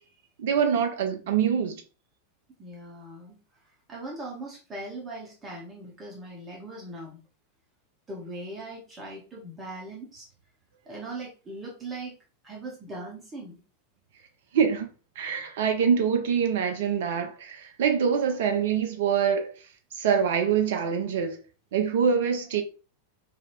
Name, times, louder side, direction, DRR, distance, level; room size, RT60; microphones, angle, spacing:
voice 1, 0.4-1.8 14.5-14.9 15.2-19.7 19.9-21.4 21.7-22.6, right 7 dB, 55° right, 0.4 m, -25 dB
voice 2, 2.6-3.4 3.9-7.2 8.1-10.3 10.9-12.2 12.4-13.6, right 2 dB, 20° right, 0.8 m, -40 dB
2.7 x 2.4 x 2.9 m
figure-of-eight pair, 90°, 0 cm